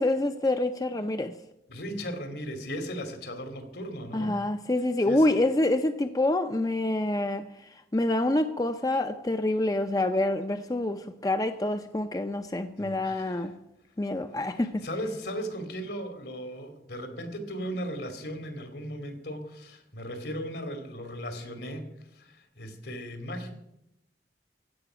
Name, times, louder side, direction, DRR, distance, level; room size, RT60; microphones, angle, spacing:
voice 1, 0.0-1.3 4.1-13.5 14.0-14.9, left 1 dB, 20° left, 0.5 m, -27 dB
voice 2, 1.7-4.4 5.1-5.3 12.8-13.5 14.6-21.9 22.1-23.5, equal, 75° left, 2.4 m, -37 dB
16.0 x 5.9 x 9.8 m
head